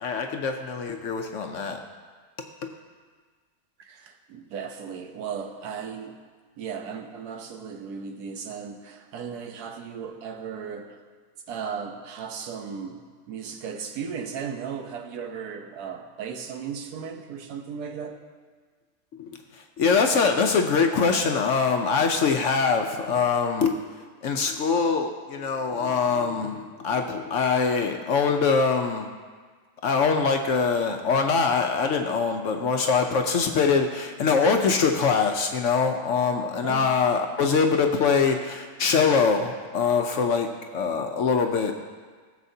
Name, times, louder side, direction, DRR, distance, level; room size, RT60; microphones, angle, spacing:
voice 1, 0.0-1.8 19.2-23.7 24.2-29.1 29.8-41.7, left 5 dB, 65° left, 4 dB, 0.8 m, -23 dB
voice 2, 3.8-6.1 6.6-11.0 11.5-18.2 36.6-36.9, right 6 dB, 80° right, 5 dB, 1.3 m, -36 dB
16.5 x 7.1 x 2.7 m, 1.5 s
omnidirectional pair, 1.6 m